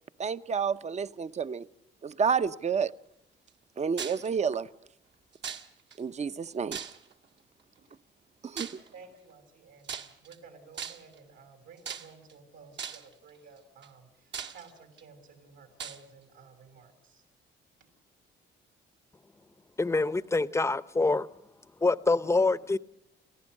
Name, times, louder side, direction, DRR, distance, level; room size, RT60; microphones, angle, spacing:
voice 1, 0.2-1.7 2.0-2.9 3.8-4.7 6.0-6.8 8.4-8.8, right 6 dB, 35° right, 0.7 m, -30 dB
sound 1, 4.0-4.3 5.4-6.0 6.7-7.2 8.6-8.9 9.8-10.4 10.8-11.2 11.9-12.3 12.8-13.1 13.8-13.9 14.3-15.0 15.8-16.0, right 7 dB, 65° right, 1.7 m, -38 dB
voice 2, 8.9-17.2, right 5 dB, 85° right, 6.5 m, -53 dB
voice 3, 19.8-21.3 21.8-22.8, left 3 dB, 15° left, 0.7 m, -25 dB
29.5 x 15.0 x 6.5 m
cardioid pair, 90°, 20 cm